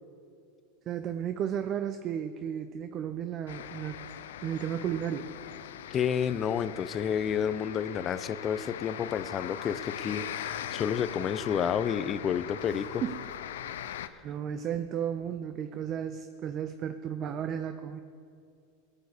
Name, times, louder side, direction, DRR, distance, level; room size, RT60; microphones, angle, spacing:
voice 1, 0.9-3.9 4.4-5.4 12.7-13.2 14.2-18.0, right 9 dB, 40° right, 9 dB, 0.6 m, -34 dB
sound 1, 3.5-14.1, left 10 dB, 80° left, 0.5 m, -40 dB
voice 2, 5.9-13.0 14.0-14.1, left 8 dB, 35° left, 14 dB, 0.6 m, -30 dB
16.0 x 7.2 x 6.6 m, 2.5 s
hypercardioid pair, 110°, 0 cm